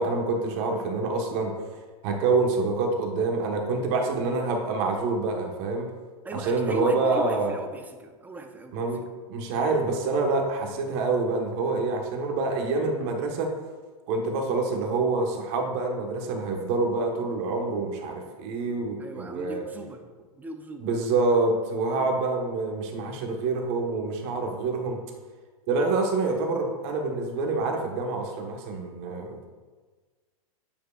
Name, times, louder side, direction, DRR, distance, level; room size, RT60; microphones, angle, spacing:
voice 1, 0.0-1.7 2.0-5.9 6.3-7.6 8.7-9.0 9.3-13.5 14.1-19.6 20.8-25.0 25.7-29.5, right 3 dB, 50° right, 2 dB, 1.3 m, -26 dB
voice 2, 6.2-8.9 19.0-20.1 20.4-21.1, right 1 dB, 10° right, 5 dB, 0.6 m, -38 dB
9.1 x 4.7 x 2.4 m, 1.4 s
hypercardioid pair, 120°, 19 cm